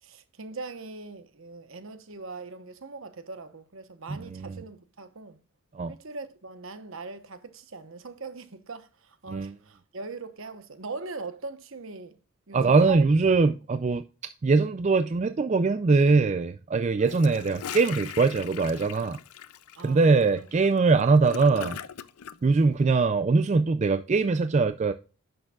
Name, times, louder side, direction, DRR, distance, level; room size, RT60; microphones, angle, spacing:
voice 1, 0.0-5.4 5.9-12.2 12.5-13.1 19.7-20.9, right 3 dB, 60° right, 1.1 m, -41 dB
voice 2, 4.1-4.6 5.7-5.9 9.3-9.5 12.5-14.0 14.4-19.2 19.8-21.8 22.4-24.9, right 4 dB, 30° right, 0.3 m, -22 dB
Gurgling / Toilet flush, 17.0-22.4, left 8 dB, 85° left, 0.5 m, -40 dB
10.5 x 6.5 x 2.4 m
head